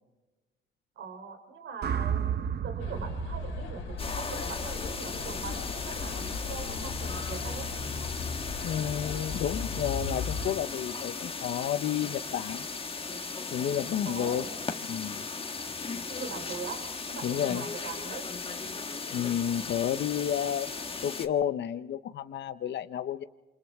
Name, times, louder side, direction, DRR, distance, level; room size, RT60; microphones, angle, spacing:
voice 1, 1.0-2.3 2.6-7.7 14.1-14.5 16.1-18.3, right 5 dB, 75° right, 5 dB, 3.6 m, -41 dB
sound 1, 1.8-6.0, right 8 dB, 55° right, 1.0 m, -34 dB
sound 2, 2.8-10.4, left 5 dB, 85° left, 3.1 m, -37 dB
sound 3, 4.0-21.3, left 4 dB, 30° left, 1.6 m, -37 dB
voice 2, 8.6-12.6 13.5-14.5 14.9-15.2 17.2-17.6 19.1-20.7 21.0-23.2, left 10 dB, 60° left, 10 dB, 0.8 m, -31 dB
28.0 x 26.5 x 3.6 m, 1.2 s
cardioid pair, 90°, 20 cm